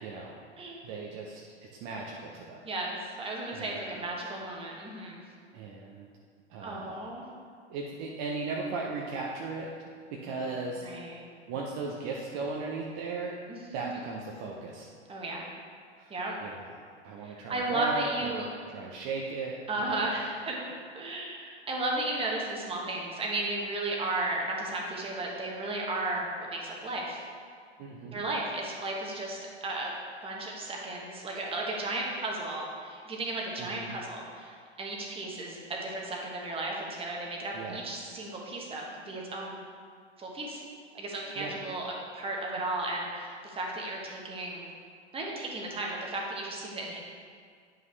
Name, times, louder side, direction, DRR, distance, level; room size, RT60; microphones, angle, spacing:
voice 1, 0.0-0.4 0.8-2.6 3.5-4.1 5.5-6.1 6.5-7.1 7.7-9.7 10.1-10.9 11.1-11.2 11.4-13.4 13.7-14.9 16.0-16.1 16.4-18.5 18.7-20.1 27.8-28.2 33.6-34.0 37.5-37.8 41.4-41.5, right 3 dB, 40° right, -2 dB, 0.8 m, -37 dB
voice 2, 2.6-5.2 6.6-7.2 10.8-11.1 13.5-13.8 15.1-15.4 16.1-16.4 17.2-18.5 19.7-20.6 20.9-27.2 28.1-29.9 30.2-39.6 40.2-40.6 40.9-44.7 45.1-47.0, right 2 dB, 15° right, -2 dB, 1.3 m, -34 dB
9.2 x 5.5 x 3.3 m, 2.1 s
figure-of-eight pair, 95°, 34 cm